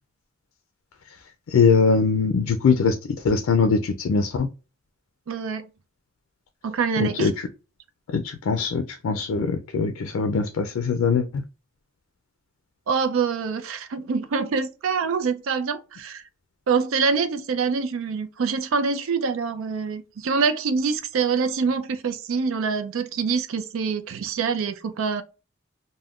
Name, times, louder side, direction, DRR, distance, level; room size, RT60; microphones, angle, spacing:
voice 1, 1.5-4.5 7.0-7.5 8.1-11.4, left 5 dB, 85° left, 0.4 m, -22 dB
voice 2, 5.3-5.7 6.6-7.3 12.9-16.2 16.7-25.2, right 5 dB, 80° right, 0.4 m, -25 dB
3.5 x 2.1 x 2.3 m
head